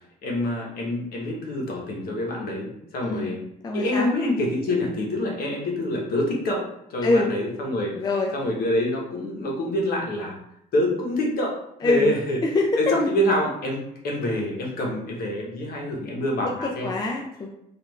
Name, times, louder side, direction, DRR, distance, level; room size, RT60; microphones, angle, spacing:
voice 1, 0.2-3.4 3.7-6.6 6.9-8.0 8.3-10.4 10.7-16.9, left 1 dB, 65° left, -1 dB, 1.0 m, -26 dB
voice 2, 3.0-3.3 3.6-4.1 7.0-7.3 7.9-8.3 11.8-12.1 12.5-12.9 16.4-17.5, left 3 dB, 25° left, 0 dB, 0.4 m, -24 dB
3.3 x 2.5 x 3.1 m, 0.76 s
cardioid pair, 110°, 17 cm